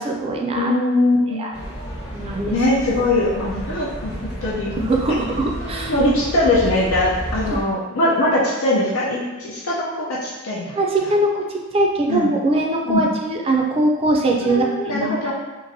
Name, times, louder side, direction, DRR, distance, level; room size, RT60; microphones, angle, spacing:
voice 1, 0.0-0.7 1.4-1.5 2.1-2.6 4.8-5.9 10.7-11.5 11.7-15.3, right 2 dB, 30° right, 0 dB, 0.3 m, -21 dB
voice 2, 0.6-1.4 2.5-4.1 4.4-4.7 5.4-10.8 11.0-11.1 12.1-12.3 12.9-13.0 14.4-15.3, left 1 dB, 90° left, -5 dB, 0.6 m, -21 dB
sound 1, 1.5-7.6, equal, 20° left, 0.6 m, -31 dB
3.0 x 2.5 x 2.6 m, 1.2 s
head